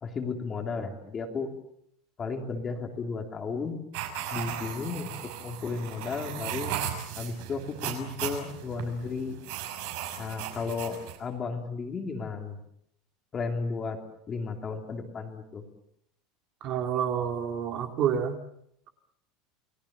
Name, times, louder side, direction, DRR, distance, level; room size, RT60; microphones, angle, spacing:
voice 1, 0.0-1.5 2.2-3.8 4.3-5.1 5.4-6.8 7.2-9.4 10.2-12.6 13.3-14.0 14.3-15.6, left 4 dB, 20° left, 4 dB, 2.9 m, -34 dB
sound 1, 3.9-11.2, right 10 dB, 60° right, 5.9 m, -36 dB
voice 2, 16.6-18.4, right 8 dB, 35° right, 5 dB, 2.4 m, -28 dB
29.5 x 20.5 x 7.1 m, 0.74 s
supercardioid pair, 175°, 0 cm